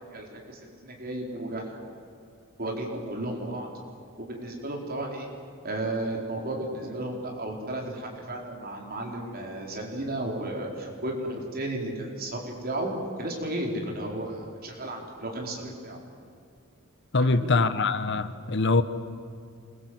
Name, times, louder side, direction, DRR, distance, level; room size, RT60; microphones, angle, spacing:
voice 1, 0.1-1.8 2.6-3.7 4.2-5.3 5.6-12.9 13.2-16.0 17.3-17.5, right 1 dB, 45° right, 4.6 m, -33 dB
voice 2, 17.1-18.8, left 3 dB, 55° left, 1.1 m, -23 dB
27.5 x 22.5 x 8.1 m
head